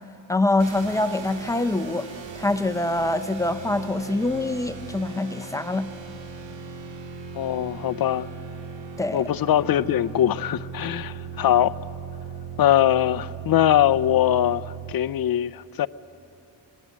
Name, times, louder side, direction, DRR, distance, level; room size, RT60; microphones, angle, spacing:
voice 1, 0.3-2.1 2.4-5.9 9.0-9.2, left 2 dB, 5° left, 0.5 m, -24 dB
sound 1, 0.6-14.9, right 5 dB, 90° right, 1.9 m, -38 dB
voice 2, 7.4-8.3 9.1-11.8 12.6-15.9, left 11 dB, 55° left, 0.5 m, -22 dB
21.5 x 21.0 x 8.3 m
wide cardioid pair, 155°, 44 cm